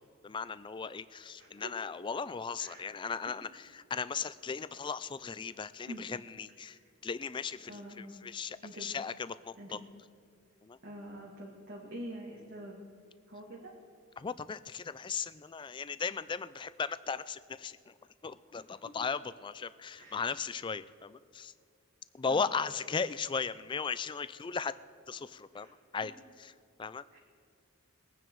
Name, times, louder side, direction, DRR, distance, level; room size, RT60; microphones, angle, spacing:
voice 1, 0.2-9.8 10.6-10.8 14.2-17.9 18.2-21.5 22.1-24.8 25.1-25.7 25.9-26.1 26.4-26.5 26.8-27.0, left 5 dB, 20° left, 15 dB, 0.3 m, -37 dB
voice 2, 1.4-1.7 2.6-3.0 5.9-6.1 6.7-6.8 7.7-8.3 8.6-8.9 9.6-9.8 10.8-12.8 13.3-13.7 18.6-18.9 20.0-20.2 22.3-22.5 25.5-25.7 26.0-26.1 27.1-27.2, right 1 dB, 55° right, -4 dB, 2.0 m, -46 dB
22.0 x 9.2 x 4.6 m, 2.3 s
head